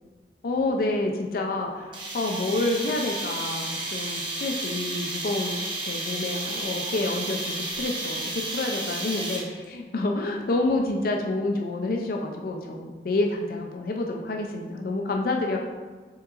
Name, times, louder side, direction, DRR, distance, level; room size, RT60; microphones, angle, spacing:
voice 1, 0.4-15.6, left 2 dB, 55° left, 2 dB, 0.4 m, -28 dB
sound 1, 1.9-9.7, right 2 dB, 25° right, 0.7 m, -32 dB
5.8 x 3.6 x 2.4 m, 1.4 s
head